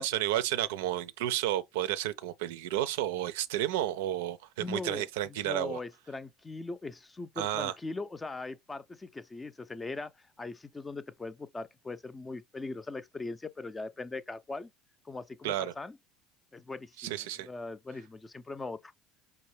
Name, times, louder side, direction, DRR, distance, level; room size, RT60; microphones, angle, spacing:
voice 1, 0.0-5.8 7.4-7.7 15.4-15.7 17.0-17.5, right 13 dB, 70° right, 0.5 m, -32 dB
voice 2, 4.6-10.1 10.4-14.7 15.1-16.0 16.5-18.9, left 3 dB, 20° left, 0.5 m, -40 dB
5.3 x 2.2 x 3.2 m
hypercardioid pair, 70°, 0 cm